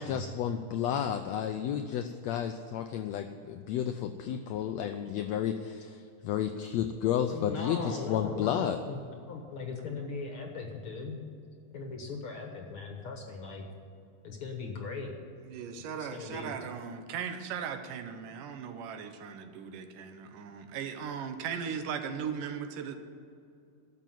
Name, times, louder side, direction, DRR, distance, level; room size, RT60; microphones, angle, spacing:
voice 1, 0.0-8.8, left 9 dB, 90° left, 7 dB, 1.5 m, -32 dB
voice 2, 7.3-9.0 9.3-11.2 11.7-13.6 14.2-15.1 16.0-16.5, left 4 dB, 55° left, 3 dB, 1.7 m, -39 dB
voice 3, 15.4-23.0, right 7 dB, 85° right, 7 dB, 2.6 m, -38 dB
12.0 x 7.1 x 9.2 m, 2.5 s
omnidirectional pair, 3.7 m